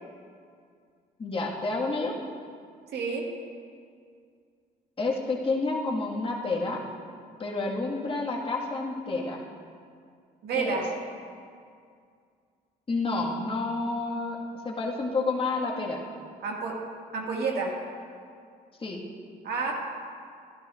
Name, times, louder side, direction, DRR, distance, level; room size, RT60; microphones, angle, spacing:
voice 1, 1.2-2.1 5.0-6.8 7.4-9.4 10.6-10.8 12.9-14.4 14.6-16.0 18.8-19.0, left 3 dB, 30° left, -3 dB, 1.8 m, -29 dB
voice 2, 2.9-3.2 10.4-10.9 16.4-16.7 17.1-17.7 19.4-19.7, right 4 dB, 70° right, -1 dB, 2.1 m, -29 dB
13.0 x 12.0 x 2.6 m, 2.2 s
cardioid pair, 90°, 17 cm